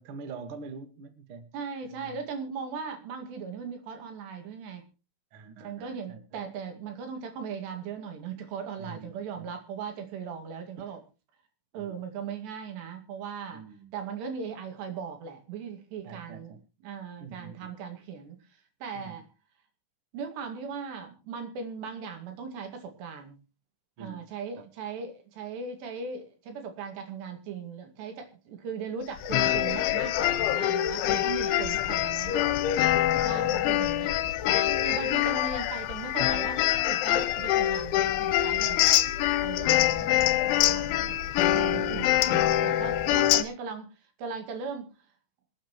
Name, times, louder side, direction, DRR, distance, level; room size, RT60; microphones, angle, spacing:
voice 1, 0.0-1.5 1.8-2.1 5.3-6.4 8.8-9.5 11.7-12.0 13.5-13.9 16.0-16.6 17.2-17.7 18.9-19.2 24.0-24.3 24.6-24.7 33.1-33.5 34.8-35.0 39.6-41.3 41.7-42.1 43.2-43.4, right 5 dB, 80° right, 8 dB, 1.2 m, -45 dB
voice 2, 1.5-4.8 5.6-11.0 11.7-13.6 13.9-16.6 16.8-18.4 18.8-19.2 20.1-23.4 24.0-32.7 33.2-34.2 34.8-39.0 39.4-39.9 40.6-40.9 41.4-43.9 44.2-44.9, right 6 dB, 65° right, 5 dB, 4.2 m, -38 dB
sound 1, 29.2-43.4, left 13 dB, 85° left, 3.2 m, -25 dB
26.5 x 8.8 x 3.1 m, 0.31 s
omnidirectional pair, 5.5 m